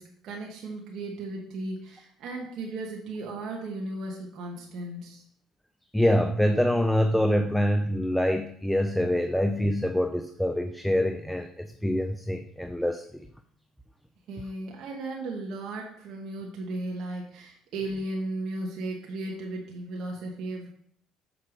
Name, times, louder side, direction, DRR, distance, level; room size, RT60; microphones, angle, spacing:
voice 1, 0.0-5.2 14.3-20.7, right 2 dB, 65° right, -1 dB, 1.7 m, -35 dB
voice 2, 5.9-13.3, equal, 5° left, 7 dB, 0.6 m, -25 dB
6.9 x 4.7 x 6.6 m, 0.66 s
supercardioid pair, 90°, 0 cm